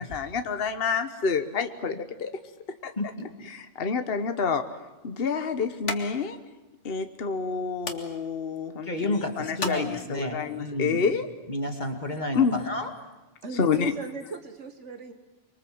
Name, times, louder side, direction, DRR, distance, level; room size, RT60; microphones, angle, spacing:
voice 1, 0.0-2.3 2.8-2.9 3.5-4.6 5.0-6.4 6.8-11.3 12.3-12.6 13.6-13.9, left 5 dB, 55° left, 8 dB, 1.4 m, -28 dB
voice 2, 3.0-3.3 8.8-11.0 11.5-12.9, left 1 dB, 40° left, 4 dB, 2.6 m, -31 dB
sound 1, 4.2-10.5, left 3 dB, 75° left, 2.6 m, -41 dB
voice 3, 13.4-15.1, right 4 dB, 70° right, 7 dB, 2.0 m, -38 dB
25.0 x 24.5 x 7.9 m, 1.1 s
omnidirectional pair, 1.2 m